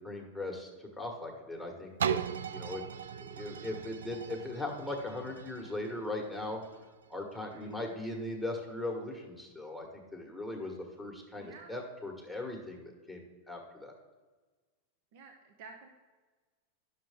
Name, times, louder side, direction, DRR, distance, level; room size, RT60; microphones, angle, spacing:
voice 1, 0.0-2.2 2.5-2.8 3.2-6.6 7.1-13.9, left 2 dB, ahead, 0 dB, 1.6 m, -39 dB
sound 1, 2.0-7.7 8.3-8.4, right 8 dB, 85° right, 0.3 m, -39 dB
voice 2, 7.4-7.8 11.4-11.7 15.1-15.9, right 4 dB, 60° right, 2 dB, 1.0 m, -52 dB
10.0 x 6.7 x 3.6 m, 1.3 s
hypercardioid pair, 110°, 0 cm